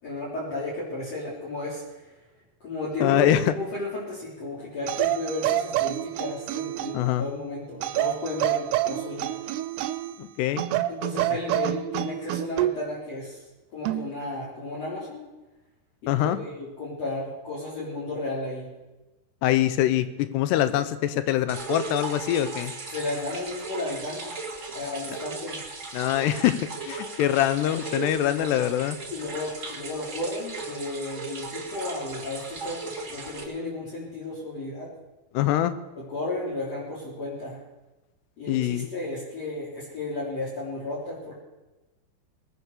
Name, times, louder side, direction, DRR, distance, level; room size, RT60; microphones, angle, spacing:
voice 1, 0.0-2.1 2.6-9.3 10.9-13.4 13.7-15.3 16.0-18.7 22.9-24.3 24.7-25.6 29.1-32.8 33.1-34.9 36.0-37.6 38.4-41.3, left 2 dB, 40° left, -8 dB, 4.4 m, -33 dB
voice 2, 3.0-3.5 6.9-7.2 10.2-10.6 16.1-16.4 19.4-22.7 25.9-26.6 26.8-29.0 35.3-35.7 38.5-38.9, left 12 dB, 90° left, 13 dB, 3.0 m, -24 dB
sound 1, 4.9-7.1 7.8-10.2 10.6-12.8 13.8-14.1, right 14 dB, 85° right, 2.8 m, -27 dB
sound 2, 21.5-33.4, right 3 dB, 35° right, 1.2 m, -37 dB
20.5 x 9.4 x 6.7 m, 1.1 s
omnidirectional pair, 4.7 m